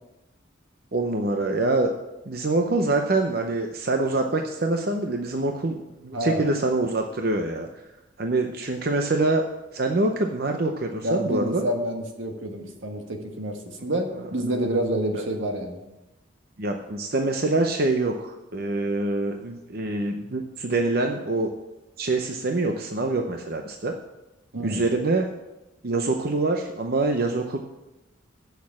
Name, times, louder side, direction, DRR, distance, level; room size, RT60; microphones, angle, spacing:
voice 1, 0.9-1.9 2.3-5.8 6.0-7.8 8.2-9.4 9.7-11.6 14.2-14.3 15.1-15.2 16.6-21.5 22.0-23.9 24.6-25.3 25.8-27.6, right 2 dB, 50° right, 4 dB, 0.7 m, -25 dB
voice 2, 11.0-15.8 24.5-24.8, right 1 dB, 80° right, 4 dB, 1.5 m, -28 dB
8.2 x 6.4 x 8.3 m, 0.98 s
head